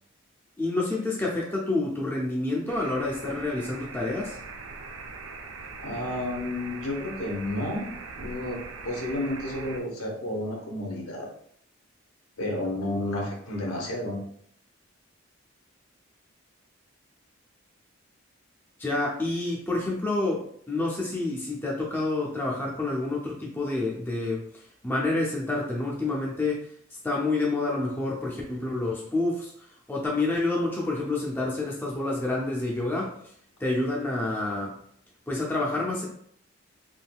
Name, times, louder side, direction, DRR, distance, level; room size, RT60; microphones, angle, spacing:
voice 1, 0.6-4.4 18.8-26.7 27.0-29.5 29.9-33.2 33.6-34.8 35.3-36.0, left 2 dB, 10° left, -3 dB, 0.5 m, -28 dB
sound 1, 2.7-9.8, right 4 dB, 65° right, 0.5 m, -41 dB
voice 2, 5.8-7.9 8.2-11.3 12.4-14.2, left 1 dB, 80° left, 0 dB, 0.9 m, -31 dB
3.5 x 2.6 x 2.3 m, 0.64 s
head